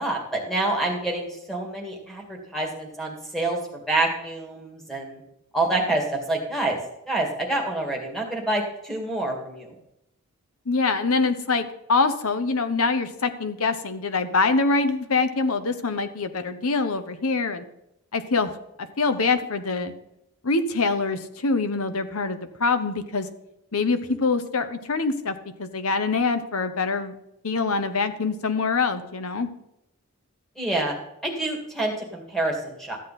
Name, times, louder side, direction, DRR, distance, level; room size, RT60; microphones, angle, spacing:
voice 1, 0.0-5.2 5.5-6.8 7.1-9.7 24.1-24.2 30.6-30.9 31.2-33.0, right 2 dB, ahead, -1 dB, 2.1 m, -27 dB
voice 2, 10.7-17.6 18.1-18.5 18.8-19.9 20.4-23.3 23.7-27.1 27.4-29.5, left 4 dB, 75° left, 10 dB, 1.0 m, -24 dB
13.5 x 8.4 x 4.2 m, 0.84 s
head